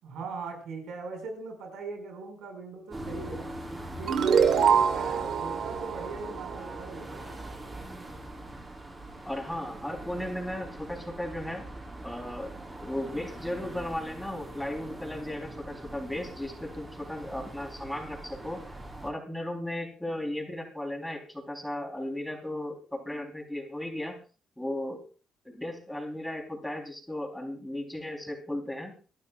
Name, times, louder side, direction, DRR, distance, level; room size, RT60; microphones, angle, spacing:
voice 1, 0.0-3.5 4.0-7.2, right 4 dB, 80° right, 3 dB, 5.5 m, -40 dB
sound 1, 2.9-19.1, right 1 dB, 20° right, 6.4 m, -42 dB
sound 2, 4.1-7.3, right 7 dB, 65° right, 1.4 m, -25 dB
voice 2, 9.3-11.6 12.0-12.5 12.8-18.6 19.0-24.2 24.6-25.0 25.4-28.9, left 1 dB, 5° left, 2 dB, 3.7 m, -36 dB
27.5 x 11.5 x 2.4 m, 0.36 s
cardioid pair, 90°, 0 cm